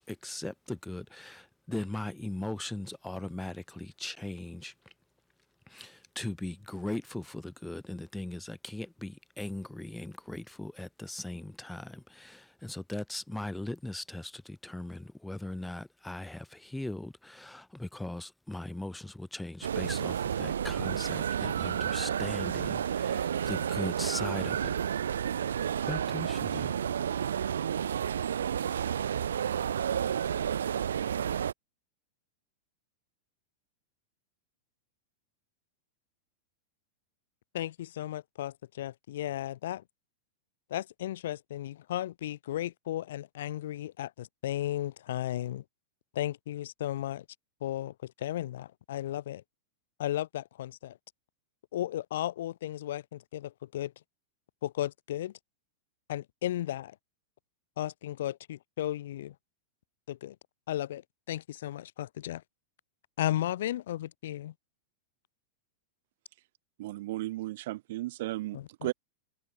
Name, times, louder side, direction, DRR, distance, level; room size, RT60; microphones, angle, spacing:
voice 1, 0.1-4.9 5.7-24.8 25.9-26.8, left 1 dB, 5° left, 3.3 m, -39 dB
sound 1, 19.6-31.5, right 8 dB, 85° right, 0.4 m, -31 dB
voice 2, 37.5-39.8 40.7-45.6 46.1-47.2 47.6-49.4 50.0-51.0 51.7-53.9 54.6-55.3 56.1-56.9 57.8-59.3 60.1-60.4 60.7-61.0 61.3-62.4 63.2-64.5 68.5-68.6, left 13 dB, 70° left, 0.5 m, -34 dB
voice 3, 66.8-68.9, right 17 dB, 65° right, 2.4 m, -35 dB
hypercardioid pair, 115°, 0 cm